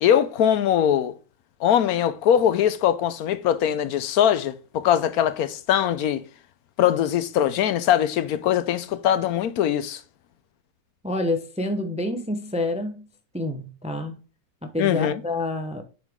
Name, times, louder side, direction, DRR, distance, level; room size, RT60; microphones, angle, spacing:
voice 1, 0.0-1.1 1.6-6.2 6.8-10.0 14.8-15.2, left 10 dB, 75° left, 1.1 m, -21 dB
voice 2, 11.0-13.0 13.3-14.1 14.6-15.8, left 1 dB, 5° right, 0.6 m, -28 dB
7.3 x 5.5 x 3.6 m
omnidirectional pair, 1.7 m